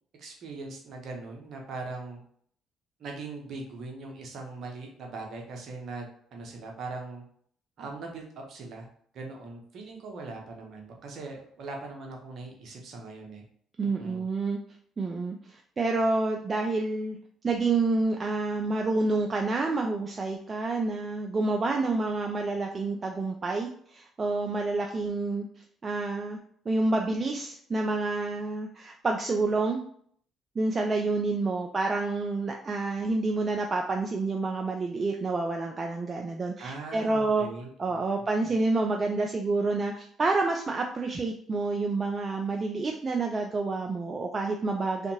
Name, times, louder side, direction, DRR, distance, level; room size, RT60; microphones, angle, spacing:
voice 1, 0.2-2.2 3.0-7.2 7.8-8.9 9.1-13.4 13.8-14.2 36.6-38.0 38.5-38.6, right 3 dB, 60° right, 1 dB, 0.7 m, -40 dB
voice 2, 13.8-14.6 15.0-17.2 17.4-25.5 25.8-26.4 26.7-29.8 30.6-37.5 37.8-45.1, right 3 dB, 35° right, 2 dB, 0.3 m, -28 dB
2.6 x 2.5 x 2.7 m, 0.62 s
hypercardioid pair, 50°, 0 cm